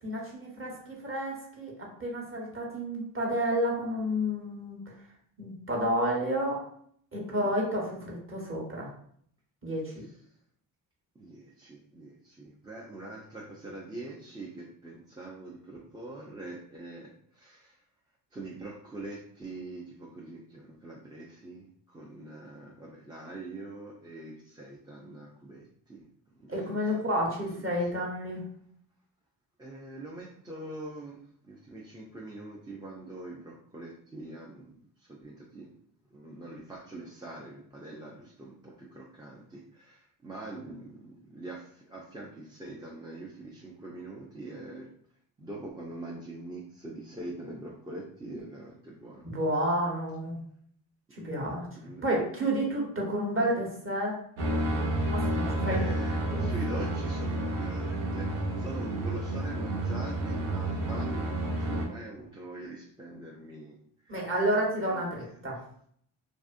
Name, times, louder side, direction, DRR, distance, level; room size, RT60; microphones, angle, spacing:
voice 1, 0.0-1.7 2.0-4.8 5.4-6.6 7.1-8.9 9.6-9.9 26.5-28.4 49.2-50.4 51.1-51.7 52.0-54.2 55.1-55.9 56.3-56.5 64.1-65.6, equal, 25° right, -2 dB, 1.1 m, -30 dB
voice 2, 11.2-17.8 18.3-26.1 26.4-27.3 29.6-35.7 36.1-44.9 45.4-49.3 51.1-52.0 55.6-64.3 64.9-65.3, right 2 dB, 10° right, -3 dB, 0.4 m, -44 dB
sound 1, 54.4-61.9, right 1 dB, 70° right, 0.7 m, -30 dB
2.6 x 2.4 x 2.4 m, 0.64 s
supercardioid pair, 60°, 49 cm